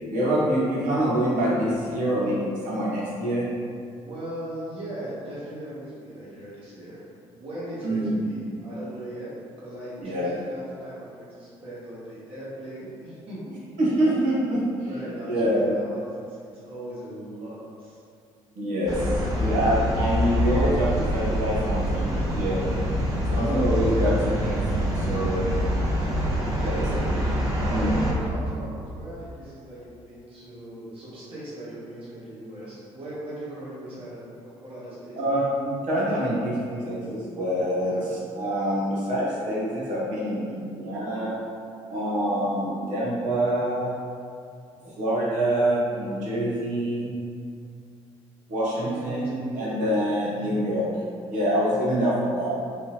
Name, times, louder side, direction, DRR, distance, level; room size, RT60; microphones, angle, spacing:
voice 1, 0.0-3.5 7.8-8.3 10.0-10.3 13.8-14.6 15.2-15.8 18.5-19.0 19.4-22.1 22.3-22.6 23.4-24.5 24.9-25.4 26.6-26.8 27.7-28.0 35.2-37.9 38.3-41.4 41.9-44.0 45.0-47.1 48.5-50.9 51.3-52.5, right 1 dB, 80° right, -6 dB, 1.0 m, -25 dB
voice 2, 4.0-7.0 7.3-9.3 9.6-13.6 14.8-18.0 23.1-24.3 24.7-25.8 26.0-27.2 27.6-35.4 37.7-38.0 44.7-44.9 48.7-49.8 51.7-52.1, right 1 dB, 45° right, -9 dB, 1.2 m, -39 dB
sound 1, 18.9-28.1, equal, 25° right, 1.1 m, -25 dB
3.4 x 2.8 x 3.0 m, 2.3 s
supercardioid pair, 70°, 13 cm